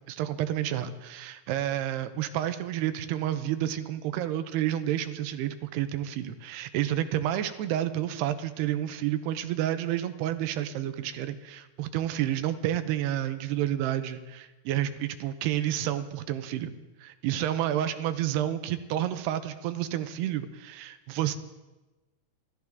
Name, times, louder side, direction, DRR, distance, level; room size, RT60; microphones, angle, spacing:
voice 1, 0.1-16.7 17.0-21.4, right 12 dB, 85° right, 10 dB, 2.9 m, -30 dB
29.5 x 13.5 x 3.6 m, 1.1 s
omnidirectional pair, 4.7 m